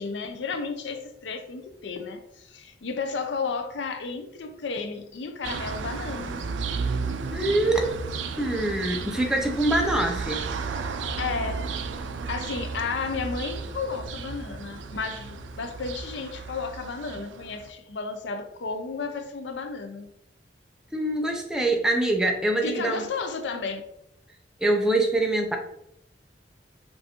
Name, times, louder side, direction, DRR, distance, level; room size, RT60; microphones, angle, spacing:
voice 1, 0.0-6.4 11.2-11.8 12.3-20.1 22.6-23.8, left 4 dB, 70° left, 0.5 m, -33 dB
sound 1, 5.4-17.7, right 4 dB, 85° right, 0.4 m, -33 dB
voice 2, 7.3-8.0 8.4-10.5 20.9-23.1 24.6-25.6, right 1 dB, 5° right, 0.5 m, -24 dB
5.4 x 2.6 x 2.9 m
head